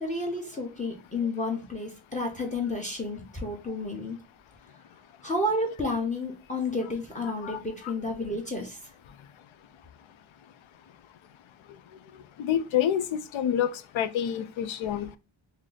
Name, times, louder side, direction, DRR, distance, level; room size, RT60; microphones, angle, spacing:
voice 1, 0.0-4.2 5.2-8.8, left 2 dB, 15° left, 0.9 m, -31 dB
voice 2, 12.4-13.7 13.9-15.2, left 9 dB, 75° left, 0.6 m, -27 dB
3.0 x 2.8 x 3.9 m
wide cardioid pair, 100°, 48 cm